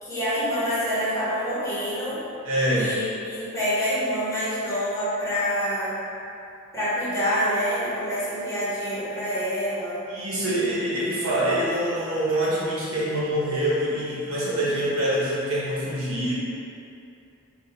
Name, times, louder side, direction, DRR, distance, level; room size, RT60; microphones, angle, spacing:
voice 1, 0.0-2.2 2.7-5.9 6.7-10.0, equal, 15° left, -13 dB, 1.4 m, -26 dB
voice 2, 2.4-2.9 10.1-16.3, right 1 dB, 70° right, -7 dB, 1.1 m, -25 dB
3.6 x 2.6 x 3.9 m, 2.7 s
head